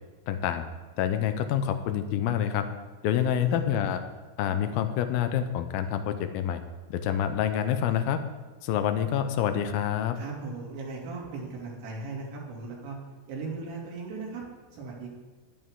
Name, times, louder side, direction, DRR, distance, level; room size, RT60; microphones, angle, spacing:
voice 1, 0.3-0.6 1.0-2.7 3.0-4.0 4.4-6.6 6.9-8.2 8.6-10.2, left 9 dB, 80° left, 9 dB, 2.2 m, -27 dB
voice 2, 3.4-3.7 10.2-13.0 13.3-14.4 14.7-15.1, right 4 dB, 85° right, -3 dB, 5.1 m, -37 dB
18.5 x 11.5 x 3.7 m, 1.3 s
omnidirectional pair, 5.0 m